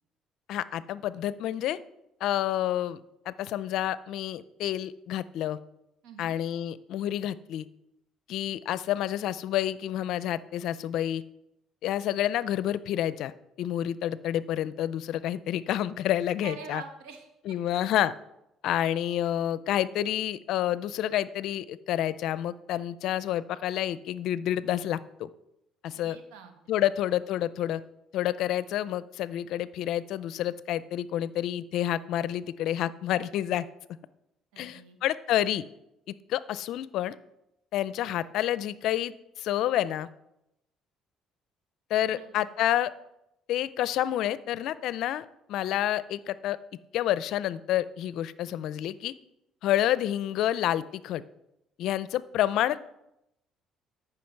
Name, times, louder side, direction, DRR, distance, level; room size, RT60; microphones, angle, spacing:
voice 1, 0.5-1.8 2.2-3.0 3.3-5.6 6.2-7.6 8.3-11.2 11.8-13.3 13.6-16.8 17.5-18.1 18.6-25.3 25.8-26.2 26.7-27.8 28.1-33.7 34.6-35.6 36.3-37.1 37.7-40.1 41.9-42.9 43.5-46.6 46.9-49.1 49.6-51.2 51.8-52.8, left 12 dB, 70° left, 17 dB, 0.5 m, -29 dB
voice 2, 6.0-6.4 16.4-17.5 25.9-26.5 26.8-26.9 34.5-35.0 42.1-42.4, right 6 dB, 90° right, 5 dB, 1.5 m, -45 dB
14.0 x 5.9 x 4.6 m, 0.85 s
supercardioid pair, 85°, 0 cm